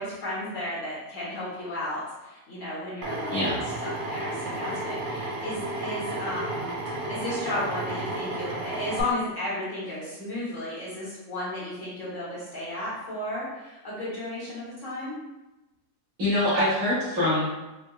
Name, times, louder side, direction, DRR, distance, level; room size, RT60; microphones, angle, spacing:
voice 1, 0.0-3.5 3.8-15.2, left 1 dB, 55° left, -8 dB, 1.2 m, -34 dB
Drill, 3.0-9.0, right 1 dB, 85° right, 0.4 m, -32 dB
voice 2, 16.2-17.4, left 1 dB, 65° right, -11 dB, 1.9 m, -24 dB
4.5 x 2.2 x 2.3 m, 1.0 s
omnidirectional pair, 1.7 m